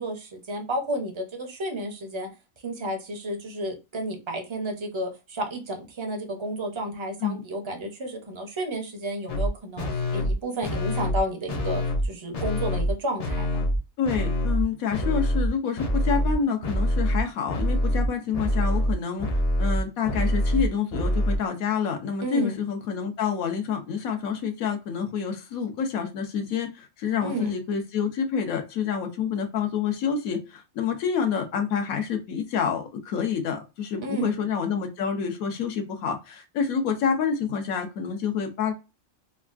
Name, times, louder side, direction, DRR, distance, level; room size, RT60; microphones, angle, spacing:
voice 1, 0.0-2.3 2.6-13.7 22.2-22.6 27.2-27.5 34.0-34.3, right 1 dB, 35° right, 0.4 m, -31 dB
sound 1, 9.3-9.5 9.8-10.3 10.6-11.2 11.5-12.1 12.3-12.9 13.2-13.8 14.1-14.6 14.9-15.5 15.8-16.4 16.6-17.2 17.5-21.4, equal, 50° left, 0.4 m, -25 dB
voice 2, 14.0-19.3 19.6-38.7, left 6 dB, 85° left, 1.2 m, -28 dB
3.4 x 2.3 x 2.4 m
omnidirectional pair, 1.4 m